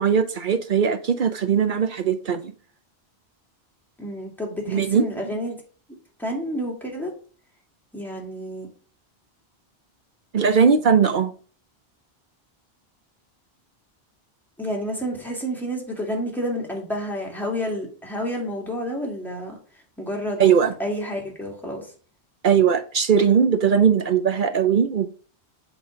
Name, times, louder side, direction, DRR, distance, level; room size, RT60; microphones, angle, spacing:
voice 1, 0.0-2.5 4.7-5.0 10.3-11.3 20.4-20.7 22.4-25.1, right 7 dB, 55° right, 10 dB, 0.7 m, -19 dB
voice 2, 4.0-5.6 6.2-7.1 7.9-8.7 14.6-19.6 20.0-20.5 20.8-21.9, equal, ahead, -1 dB, 2.4 m, -29 dB
7.9 x 3.9 x 5.0 m, 0.40 s
omnidirectional pair, 1.1 m